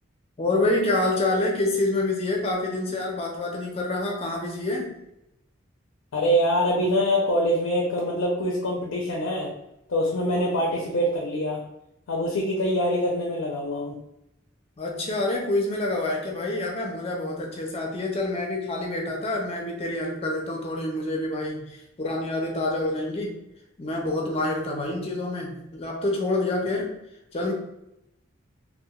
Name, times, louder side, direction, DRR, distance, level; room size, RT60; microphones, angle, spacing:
voice 1, 0.4-4.9 14.8-23.4 23.8-26.9 27.3-27.5, left 2 dB, 30° left, 0 dB, 0.5 m, -27 dB
voice 2, 6.1-9.5 9.9-11.6 12.1-14.0, equal, 90° left, -2 dB, 0.5 m, -24 dB
2.9 x 2.1 x 2.2 m, 0.83 s
head